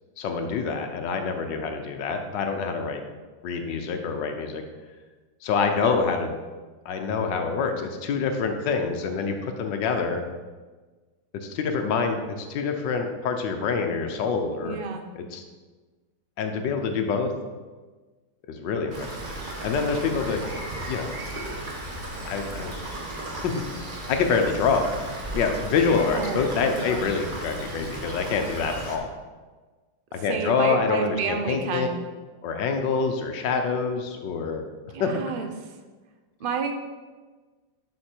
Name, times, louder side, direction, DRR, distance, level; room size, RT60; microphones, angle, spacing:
voice 1, 0.2-3.0 3.4-4.6 5.4-6.3 6.8-10.2 11.3-14.8 15.2-15.4 16.4-17.3 18.5-19.2 19.6-20.4 20.9-21.1 22.2-22.8 23.4-23.6 24.1-24.8 25.3-29.1 30.1-31.9 32.4-34.6 35.0-35.2, left 5 dB, 85° left, 5 dB, 1.5 m, -26 dB
voice 2, 14.6-15.0 26.1-26.4 26.8-27.1 30.3-32.0 34.9-35.5 36.4-36.7, right 5 dB, 55° right, 5 dB, 0.6 m, -30 dB
Rain, 18.9-29.0, right 1 dB, 30° right, 1.2 m, -35 dB
11.5 x 4.3 x 4.4 m, 1.3 s
omnidirectional pair, 1.9 m